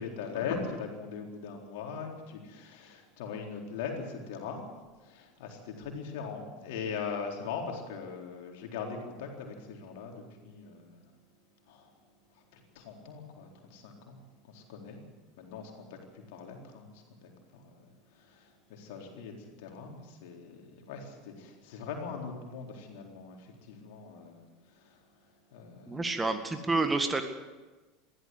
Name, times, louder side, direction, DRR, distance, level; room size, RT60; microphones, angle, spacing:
voice 1, 0.0-4.6 5.0-11.0 11.7-11.9 12.3-15.0 15.4-25.1 25.5-26.2 26.5-26.6, left 5 dB, 60° left, 1 dB, 4.0 m, -41 dB
voice 2, 25.9-27.2, right 3 dB, 15° right, 8 dB, 1.8 m, -29 dB
22.5 x 15.5 x 8.0 m, 1.2 s
figure-of-eight pair, 75°, 0 cm